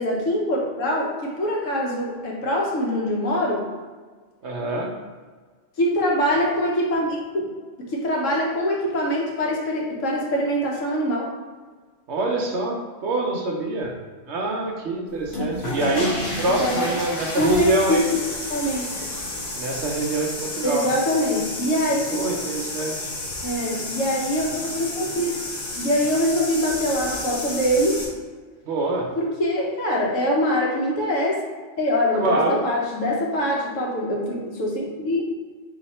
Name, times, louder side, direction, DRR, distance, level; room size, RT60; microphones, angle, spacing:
voice 1, 0.0-3.6 5.8-7.5 7.9-11.3 16.6-17.0 17.4-18.2 18.5-18.8 20.6-22.2 23.4-24.5 24.7-25.4 25.8-28.0 29.1-31.4 31.8-35.2, equal, 75° left, -2 dB, 1.2 m, -23 dB
voice 2, 4.4-4.9 12.1-13.9 14.3-16.1 16.4-18.0 19.6-20.9 22.1-23.1 28.7-29.1 32.1-32.6, right 2 dB, 65° right, 0 dB, 0.9 m, -25 dB
sound 1, 15.2-28.0, left 2 dB, 55° left, 1.1 m, -31 dB
4.0 x 2.8 x 4.2 m, 1.4 s
omnidirectional pair, 1.4 m